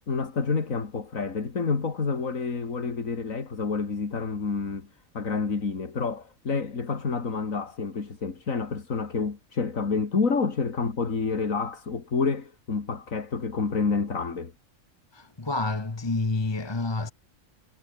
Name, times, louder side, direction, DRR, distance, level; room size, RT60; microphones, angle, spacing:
voice 1, 0.1-4.9 5.1-14.5, left 4 dB, 80° left, 2.8 m, -28 dB
voice 2, 15.1-17.1, left 3 dB, 20° left, 1.2 m, -28 dB
omnidirectional pair, 1.4 m